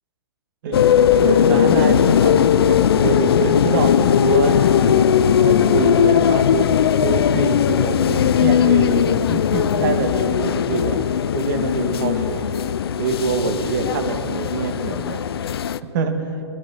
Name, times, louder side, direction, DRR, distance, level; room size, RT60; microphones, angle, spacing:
voice 1, 0.6-5.1 5.4-6.7 7.0-11.0 11.3-12.4 13.0-15.2 15.9-16.3, right 4 dB, 50° right, 5 dB, 1.9 m, -25 dB
sound 1, 0.7-15.8, left 9 dB, 65° left, 0.6 m, -18 dB
23.0 x 13.0 x 4.2 m, 2.8 s
figure-of-eight pair, 125°, 14 cm